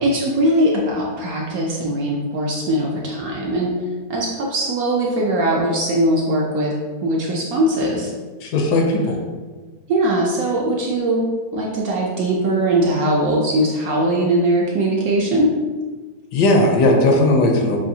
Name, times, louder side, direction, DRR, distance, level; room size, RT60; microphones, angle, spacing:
voice 1, 0.0-3.7 4.1-6.7 7.0-8.1 9.9-15.5, right 1 dB, 70° right, -2 dB, 0.9 m, -20 dB
voice 2, 8.4-9.2 16.3-17.8, left 1 dB, 75° left, 1 dB, 1.2 m, -16 dB
5.6 x 2.6 x 2.7 m, 1.3 s
omnidirectional pair, 1.9 m